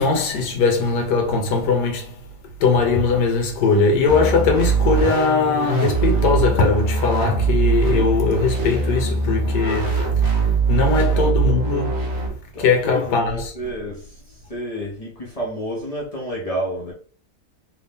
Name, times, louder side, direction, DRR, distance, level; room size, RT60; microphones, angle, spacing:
voice 1, 0.0-2.2 2.6-10.1 10.7-12.2 12.6-13.5, left 4 dB, 85° left, 1.4 m, -20 dB
sound 1, 4.1-12.3, right 4 dB, 20° right, 0.7 m, -21 dB
voice 2, 10.9-11.3 12.5-16.9, equal, 30° left, 0.7 m, -30 dB
3.2 x 2.7 x 3.4 m
omnidirectional pair, 1.8 m